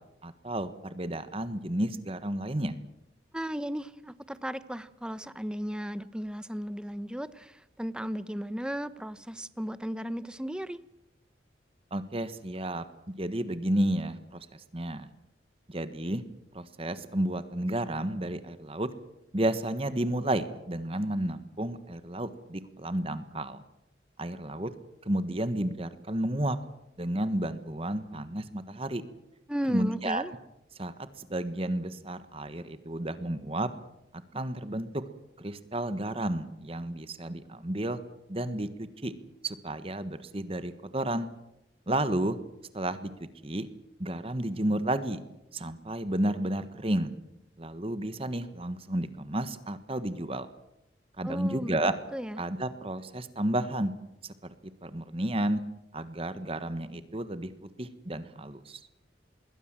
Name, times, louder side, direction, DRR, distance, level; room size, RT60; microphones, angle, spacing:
voice 1, 0.2-2.8 11.9-12.8 13.2-15.1 15.7-16.2 16.5-18.9 19.3-23.6 24.2-24.7 25.0-26.6 27.0-29.0 29.7-30.2 30.8-33.7 34.3-35.0 35.4-38.0 38.3-39.1 39.4-41.3 41.9-42.4 42.7-43.1 43.4-43.7 44.0-45.2 45.5-47.1 47.6-50.5 51.2-51.9 52.4-53.9 54.2-54.5 54.8-55.6 55.9-57.5 57.8-58.8, right 1 dB, 30° right, 12 dB, 1.3 m, -32 dB
voice 2, 3.3-10.8 29.5-30.3 51.2-51.8 52.1-52.4, equal, 5° right, 14 dB, 0.9 m, -35 dB
26.5 x 21.5 x 7.5 m, 0.85 s
head